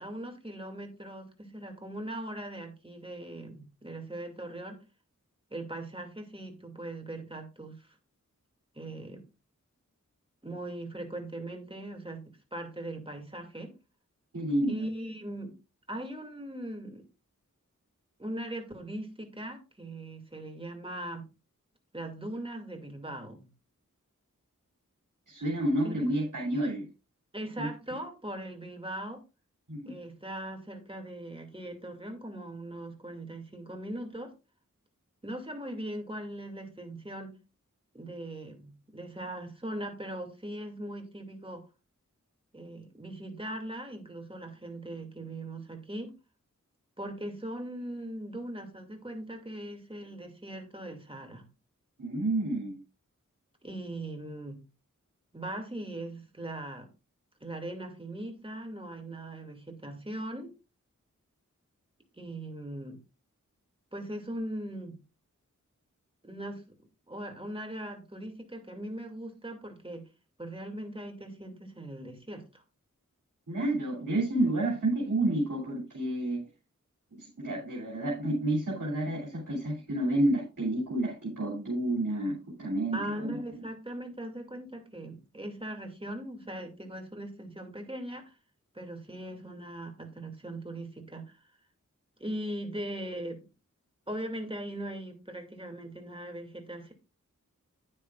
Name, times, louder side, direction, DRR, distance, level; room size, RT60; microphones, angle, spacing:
voice 1, 0.0-4.8 5.5-7.9 8.7-9.2 10.4-13.7 14.7-15.5 15.9-17.0 18.2-21.3 21.9-23.5 25.8-26.1 27.3-29.2 29.8-34.3 35.2-37.4 37.9-41.6 42.5-46.1 47.0-51.5 53.6-54.6 55.3-56.9 57.4-60.5 62.1-63.0 63.9-65.0 66.2-66.6 67.1-70.1 70.4-72.6 82.9-88.3 88.7-91.4 92.2-93.4 94.1-96.9, right 1 dB, 15° right, 2.4 m, -40 dB
voice 2, 14.3-14.9 25.3-26.9 27.6-27.7 29.7-30.0 52.0-52.8 73.5-76.4 77.1-83.3, right 1 dB, 80° right, 2.9 m, -30 dB
9.8 x 9.4 x 2.4 m
wide cardioid pair, 55°, 31 cm